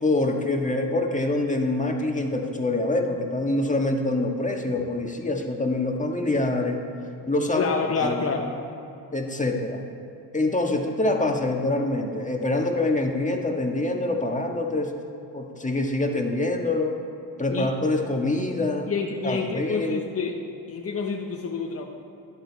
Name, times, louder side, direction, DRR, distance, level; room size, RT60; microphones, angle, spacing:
voice 1, 0.0-6.8 7.2-7.7 8.0-8.3 9.1-9.8 10.3-14.9 15.3-17.0 17.4-18.9 19.2-20.0, left 2 dB, 20° left, 2 dB, 1.6 m, -25 dB
voice 2, 7.5-8.5 17.5-17.7 18.9-21.8, left 4 dB, 35° left, 2 dB, 1.1 m, -28 dB
12.0 x 10.0 x 4.2 m, 2.7 s
supercardioid pair, 60°, 41 cm